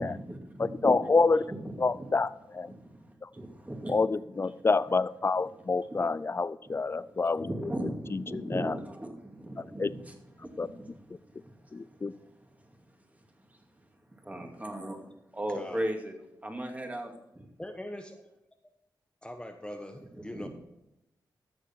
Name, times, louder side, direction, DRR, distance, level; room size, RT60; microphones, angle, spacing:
voice 1, 0.0-2.1 2.7-4.0 4.5-4.6 5.9-6.0 6.7-16.1 16.4-17.5 20.0-20.5, right 1 dB, 20° right, 3 dB, 2.3 m, -39 dB
voice 2, 0.8-1.5 1.8-2.7 3.9-7.5 8.3-8.7 9.8-9.9 10.6-10.7 11.7-12.1, left 4 dB, 30° left, 17 dB, 0.4 m, -27 dB
voice 3, 15.5-15.9 17.6-18.3 19.2-20.5, left 1 dB, 10° left, 5 dB, 1.1 m, -41 dB
14.5 x 6.6 x 4.5 m, 0.87 s
cardioid pair, 65°, 8 cm